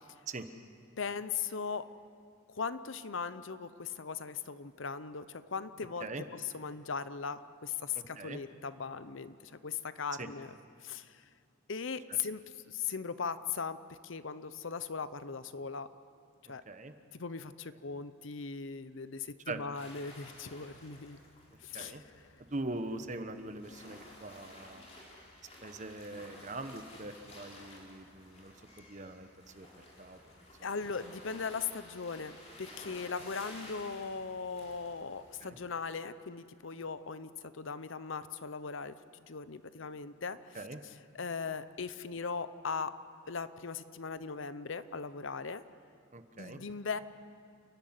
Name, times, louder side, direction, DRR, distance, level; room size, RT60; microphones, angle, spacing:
voice 1, 1.0-1.9 2.5-11.3 11.7-13.8 14.0-15.9 16.5-16.6 17.1-21.2 21.6-22.0 30.6-38.9 39.3-42.9 43.3-45.6 46.4-47.0, left 5 dB, 65° left, 13 dB, 0.7 m, -39 dB
sound 1, 19.8-35.4, left 1 dB, 30° left, 3.9 m, -54 dB
voice 2, 22.5-24.8 25.6-28.5 28.9-29.3 29.6-29.7 30.0-30.2 35.4-35.6 40.5-40.8 46.1-46.6, right 2 dB, 35° right, 8 dB, 1.1 m, -41 dB
30.0 x 11.5 x 9.6 m, 2.3 s
head